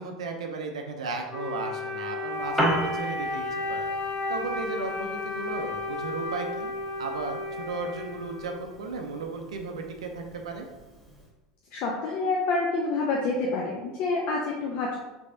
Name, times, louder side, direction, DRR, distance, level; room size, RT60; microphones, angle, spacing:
voice 1, 0.0-3.9 4.3-6.7 7.0-10.7, right 4 dB, 85° right, 3 dB, 0.4 m, -35 dB
Wind instrument woodwind instrument, 1.3-8.8, left 2 dB, 35° left, 1.0 m, -33 dB
Piano, 2.3-11.3, equal, ahead, 1.0 m, -36 dB
voice 2, 11.7-15.0, left 3 dB, 55° left, -1 dB, 0.5 m, -27 dB
3.3 x 3.3 x 2.6 m, 1.1 s
hypercardioid pair, 95°, 3 cm